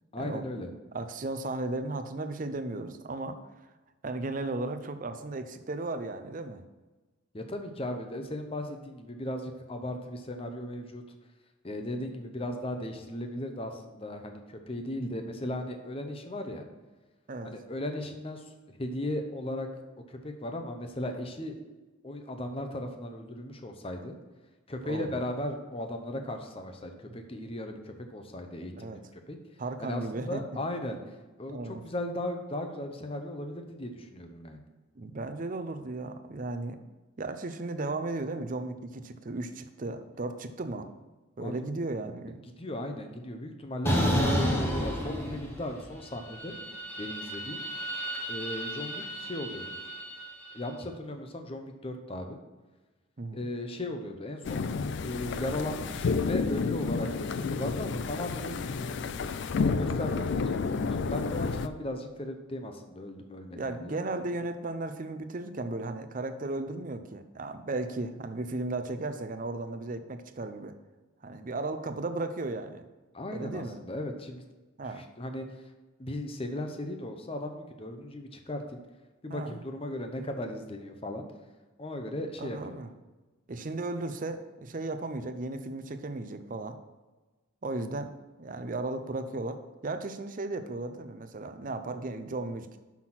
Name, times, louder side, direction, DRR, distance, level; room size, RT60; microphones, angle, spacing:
voice 1, 0.1-0.7 7.3-11.0 11.6-16.6 17.4-19.7 20.1-21.5 22.0-24.1 24.7-29.4 29.8-34.6 41.4-41.6 42.3-46.6 47.0-47.6 48.3-49.7 50.5-52.4 53.3-54.7 55.0-58.9 59.6-60.6 61.0-64.0 73.1-74.4 74.9-75.6 76.0-78.8 79.2-81.3 81.8-82.6, left 1 dB, 25° left, 5 dB, 0.7 m, -37 dB
voice 2, 0.9-3.4 4.0-6.6 17.3-17.5 24.8-25.2 28.8-29.0 29.6-30.4 31.5-31.8 34.9-36.8 37.2-40.9 41.4-42.4 53.2-53.5 63.6-70.7 71.2-72.8 73.3-73.8 74.8-75.1 79.3-79.5 82.4-82.9 83.5-86.8 87.6-88.1 88.4-92.8, right 2 dB, 40° right, 8 dB, 0.5 m, -35 dB
sound 1, 43.9-45.8 46.1-50.4, equal, 10° left, 1.0 m, -31 dB
sound 2, 54.4-61.7, left 4 dB, 55° left, 0.3 m, -30 dB
5.9 x 5.9 x 6.1 m, 1.2 s
head